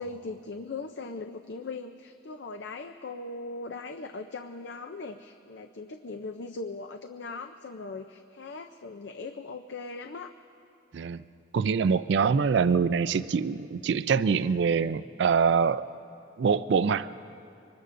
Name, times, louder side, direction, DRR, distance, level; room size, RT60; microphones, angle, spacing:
voice 1, 0.0-10.3, left 3 dB, 65° left, 6 dB, 0.5 m, -39 dB
voice 2, 11.5-15.9 16.4-17.1, right 6 dB, 65° right, 14 dB, 0.3 m, -24 dB
24.5 x 20.5 x 2.6 m, 2.7 s
head